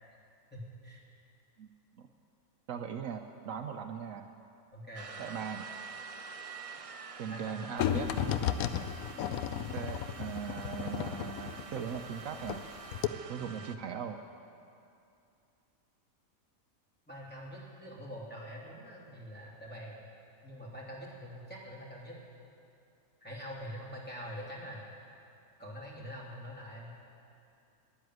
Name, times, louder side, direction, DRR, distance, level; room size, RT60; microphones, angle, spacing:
voice 1, 0.5-1.0 4.7-5.1 7.3-8.0 13.5-13.7 17.1-20.0 20.4-22.2 23.2-24.8 25.6-26.9, equal, 5° left, -5 dB, 2.9 m, -45 dB
voice 2, 2.7-4.3 5.2-5.7 7.2-8.1 9.7-12.6 13.3-14.2, right 7 dB, 70° right, 6 dB, 1.0 m, -39 dB
sound 1, 4.9-13.8, right 5 dB, 45° right, 0.4 m, -47 dB
sound 2, 7.8-12.6 12.9-13.1, left 10 dB, 85° left, 1.1 m, -33 dB
12.5 x 11.0 x 9.4 m, 2.6 s
omnidirectional pair, 1.5 m